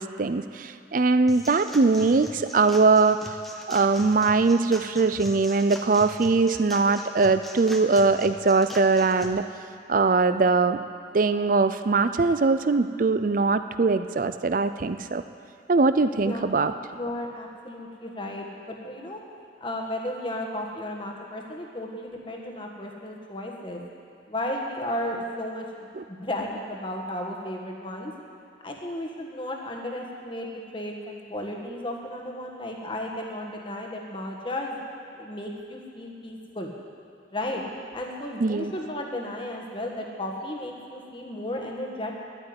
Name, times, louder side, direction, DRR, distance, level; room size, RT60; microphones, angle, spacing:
voice 1, 0.0-3.4 3.7-9.5 9.9-10.8 11.1-15.2 15.7-16.7 26.0-26.1 38.4-38.7, right 3 dB, 45° right, 11 dB, 0.5 m, -21 dB
sound 1, 1.3-9.3, equal, ahead, 0.9 m, -41 dB
voice 2, 16.1-16.6 16.9-19.2 19.6-23.8 24.3-28.1 28.6-34.8 35.1-36.7 37.3-37.6 37.9-42.2, left 1 dB, 25° left, 0 dB, 1.5 m, -34 dB
11.5 x 9.0 x 9.6 m, 2.5 s
head